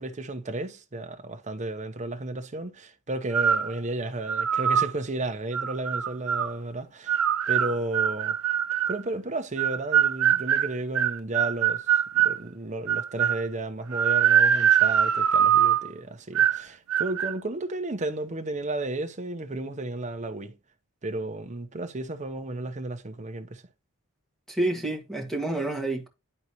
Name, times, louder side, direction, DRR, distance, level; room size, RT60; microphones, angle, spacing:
voice 1, 0.0-7.2 7.5-8.4 8.9-20.6 21.0-23.6, right 2 dB, 35° right, 0.9 m, -33 dB
sound 1, 3.3-3.7 4.3-4.9 5.5-6.5 7.1-9.0 9.6-12.4 12.9-13.4 13.9-15.9 16.3-16.6 16.9-17.3, right 9 dB, 70° right, 0.5 m, -23 dB
voice 2, 24.5-26.1, right 2 dB, ahead, 1.7 m, -28 dB
11.0 x 4.0 x 3.0 m
head